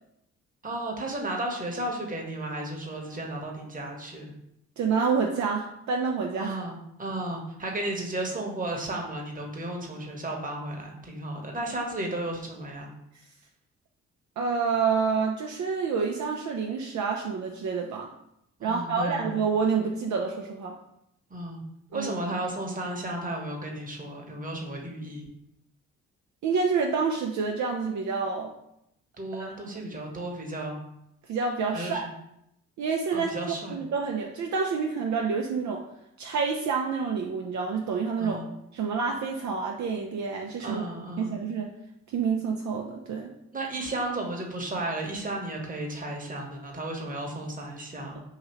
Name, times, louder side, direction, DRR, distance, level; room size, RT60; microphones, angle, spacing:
voice 1, 0.6-4.3 6.4-12.9 18.6-19.4 21.3-21.6 21.9-25.3 29.2-30.8 31.7-32.1 33.1-33.8 38.2-38.5 40.6-41.4 43.5-48.2, right 1 dB, 25° right, 0 dB, 1.1 m, -34 dB
voice 2, 4.8-6.6 14.4-18.1 18.6-20.8 21.9-22.1 26.4-28.5 29.4-29.5 31.3-32.1 32.8-33.4 33.7-35.8 36.2-38.4 38.7-40.8 41.2-41.7 42.1-43.3 48.1-48.2, right 5 dB, 60° right, 1 dB, 0.5 m, -28 dB
2.9 x 2.7 x 4.3 m, 0.79 s
supercardioid pair, 55°, 32 cm